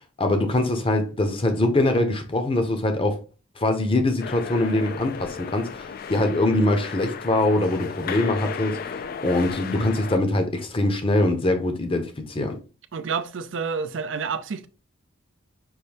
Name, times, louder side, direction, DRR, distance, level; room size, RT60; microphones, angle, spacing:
voice 1, 0.2-3.2 3.6-12.6, left 1 dB, 25° left, 0.7 m, -23 dB
sound 1, 4.2-10.2, left 6 dB, 45° left, 0.3 m, -34 dB
voice 2, 12.9-14.7, right 5 dB, 65° right, 0.5 m, -29 dB
5.4 x 2.7 x 3.3 m
head